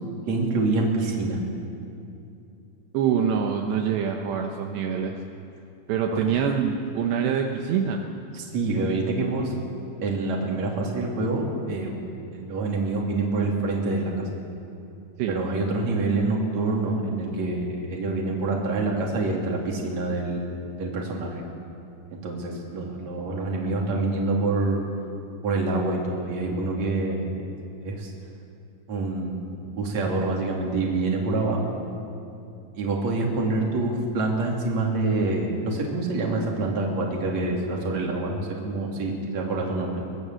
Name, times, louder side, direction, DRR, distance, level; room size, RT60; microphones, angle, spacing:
voice 1, 0.3-1.4 6.1-6.3 8.3-9.5 10.0-12.0 12.3-14.3 15.3-21.3 22.1-24.9 25.4-27.3 27.8-28.1 28.9-31.6 32.8-40.0, right 2 dB, 40° right, -1 dB, 3.7 m, -26 dB
voice 2, 2.9-5.2 5.9-8.0 15.2-15.4, right 7 dB, 75° right, 2 dB, 3.1 m, -25 dB
22.5 x 17.5 x 7.7 m, 2.7 s
omnidirectional pair, 5.2 m